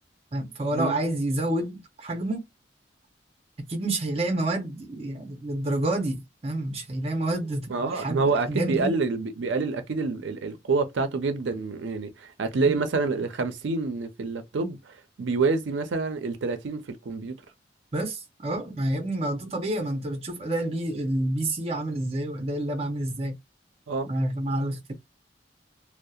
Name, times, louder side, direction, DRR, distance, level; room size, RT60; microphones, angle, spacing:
voice 1, 0.3-2.4 3.7-9.0 12.7-12.8 17.9-23.4 24.0-24.9, right 1 dB, 35° right, 0.6 m, -29 dB
voice 2, 7.7-17.4 23.9-24.1, right 4 dB, 90° right, 0.5 m, -27 dB
2.7 x 2.0 x 2.3 m
head